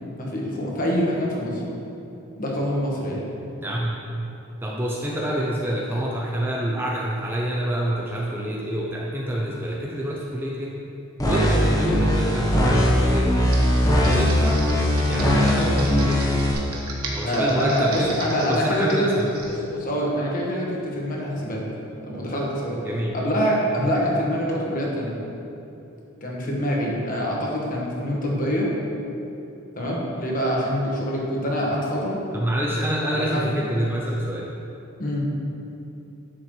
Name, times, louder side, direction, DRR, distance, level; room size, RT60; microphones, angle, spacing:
voice 1, 0.2-1.6 2.4-3.2 17.2-19.1 19.5-21.6 22.0-22.8 23.1-25.1 26.2-28.7 29.8-32.2 33.0-33.5 35.0-35.3, equal, 40° left, -3 dB, 1.4 m, -25 dB
voice 2, 3.6-4.3 4.6-10.8 11.2-13.6 14.1-14.6 15.1-16.4 17.1-19.4 22.8-23.1 23.8-23.9 32.3-34.5, equal, 10° right, -2 dB, 0.5 m, -27 dB
sound 1, 11.2-16.5, equal, 15° left, 1.1 m, -20 dB
Computer keyboard, 13.4-19.6, right 3 dB, 90° right, 1.3 m, -36 dB
10.0 x 7.0 x 3.2 m, 2.9 s
head